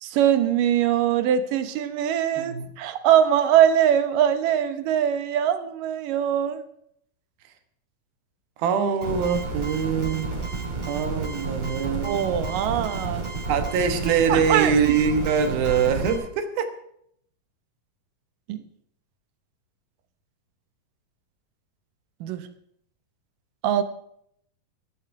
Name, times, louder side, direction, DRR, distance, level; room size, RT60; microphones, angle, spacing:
voice 1, 0.0-6.7 12.0-13.3 14.3-14.7 18.5-18.6 22.2-22.5 23.6-23.8, right 10 dB, 75° right, 10 dB, 2.6 m, -22 dB
voice 2, 2.4-2.7 8.6-10.4 10.9-12.2 13.5-16.7, right 6 dB, 90° right, 8 dB, 3.2 m, -23 dB
sound 1, 9.0-16.2, right 3 dB, 20° right, 5.1 m, -31 dB
15.0 x 14.0 x 4.7 m, 0.69 s
omnidirectional pair, 4.1 m